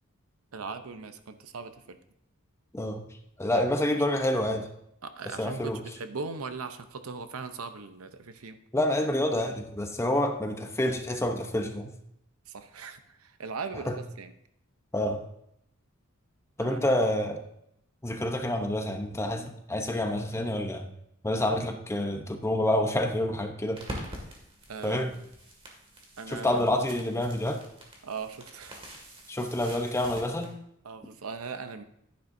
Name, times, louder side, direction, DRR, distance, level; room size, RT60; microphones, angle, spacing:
voice 1, 0.5-2.0 3.5-3.6 3.9-4.0 5.0-8.6 12.5-13.9 14.2-14.3 16.6-16.9 24.7-25.2 26.2-26.7 28.0-28.8 30.8-31.8, right 4 dB, 80° right, 9 dB, 0.7 m, -39 dB
voice 2, 2.7-3.0 3.4-4.7 5.3-5.8 8.7-11.9 13.9-14.0 14.9-15.2 16.6-17.4 18.0-20.9 21.2-23.8 24.8-25.1 26.3-27.6 29.3-30.5, left 1 dB, 15° left, 5 dB, 0.8 m, -28 dB
sound 1, 23.7-30.5, equal, 25° right, 2.1 m, -45 dB
11.5 x 10.0 x 2.7 m, 0.76 s
head